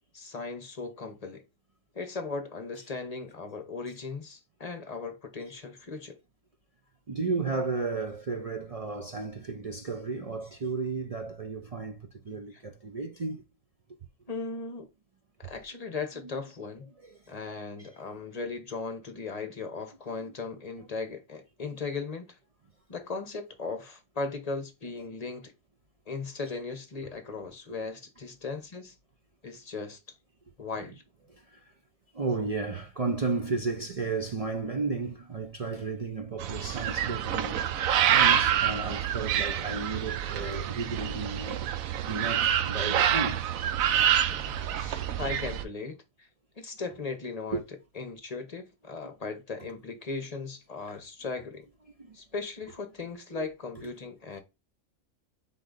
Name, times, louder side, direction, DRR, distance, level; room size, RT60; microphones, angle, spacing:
voice 1, 0.1-1.4 1.9-6.2 12.5-12.6 14.3-14.9 15.4-16.9 17.3-22.4 22.9-25.5 26.1-28.9 29.4-30.0 30.6-31.0 44.3-46.3 46.6-47.6 47.9-51.7 52.1-54.4, left 4 dB, 35° left, 0.8 m, -37 dB
voice 2, 7.1-13.4 17.0-17.2 17.8-17.9 20.1-20.2 31.3-31.7 32.1-43.5 44.0-44.1 47.5-47.6 49.6-49.7 52.0-52.2 53.3-53.5, right 4 dB, 55° right, 0.4 m, -33 dB
sound 1, 36.4-45.6, right 10 dB, 85° right, 1.0 m, -27 dB
3.8 x 3.8 x 3.7 m
omnidirectional pair, 1.4 m